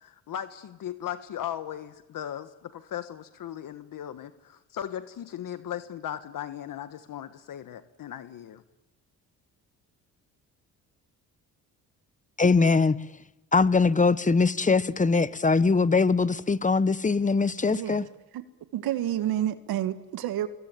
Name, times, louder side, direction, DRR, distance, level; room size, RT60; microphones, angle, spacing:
voice 1, 0.0-8.6, left 10 dB, 60° left, 1.4 m, -37 dB
voice 2, 12.4-13.0 13.5-18.0, left 4 dB, 20° left, 1.1 m, -22 dB
voice 3, 17.7-18.1 18.3-18.4 18.7-20.5, right 12 dB, 75° right, 1.6 m, -29 dB
26.5 x 22.0 x 9.1 m
supercardioid pair, 75°, 37 cm